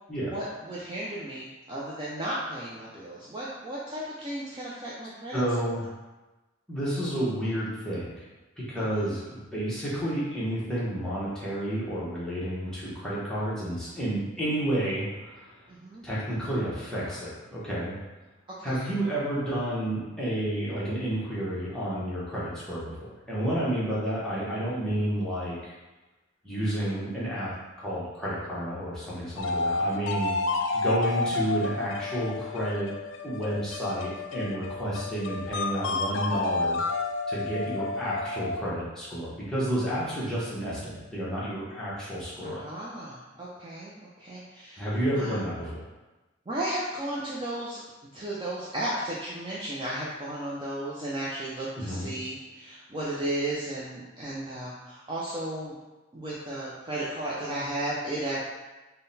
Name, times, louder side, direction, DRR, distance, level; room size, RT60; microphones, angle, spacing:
voice 1, 0.3-5.4 8.8-9.1 15.7-16.0 18.6-19.0 26.5-26.8 31.2-31.3 42.4-44.9 45.1-45.4 46.5-47.8 48.1-55.8 56.1-58.4, right 1 dB, 25° right, -6 dB, 0.4 m, -34 dB
voice 2, 5.3-5.8 6.7-8.1 8.6-15.6 16.0-18.0 18.6-25.7 26.4-27.5 27.8-30.3 30.7-32.9 33.2-36.8 37.3-42.6 44.8-45.8 51.8-52.1, right 1 dB, 5° left, -9 dB, 1.0 m, -30 dB
sound 1, 29.4-38.8, left 3 dB, 65° left, 0.3 m, -31 dB
3.8 x 2.2 x 3.9 m, 1.1 s
head